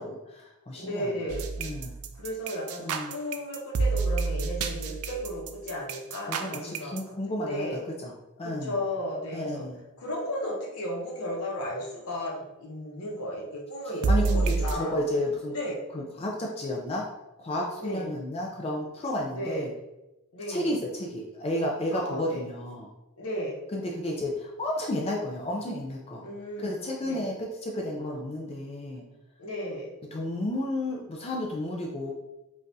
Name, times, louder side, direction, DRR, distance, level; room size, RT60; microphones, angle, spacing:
voice 1, 0.0-1.1 1.6-1.9 2.8-3.1 6.3-8.1 8.4-8.8 9.3-9.8 14.1-15.5 15.9-17.1 17.4-19.7 20.5-22.9 23.7-26.2 26.6-27.3 27.6-29.0 30.1-32.1, left 1 dB, 25° left, -1 dB, 0.4 m, -32 dB
voice 2, 0.7-1.5 2.2-6.9 7.4-7.8 8.4-9.7 10.0-15.1 15.5-15.8 17.8-18.1 19.3-19.7 20.3-20.7 21.9-22.4 23.2-23.5 26.2-26.7 27.0-27.3 29.4-29.9, equal, 80° left, -2 dB, 0.9 m, -34 dB
sound 1, 1.3-7.0 14.0-14.7, right 4 dB, 80° right, 0.4 m, -28 dB
5.2 x 2.4 x 2.6 m, 0.99 s
head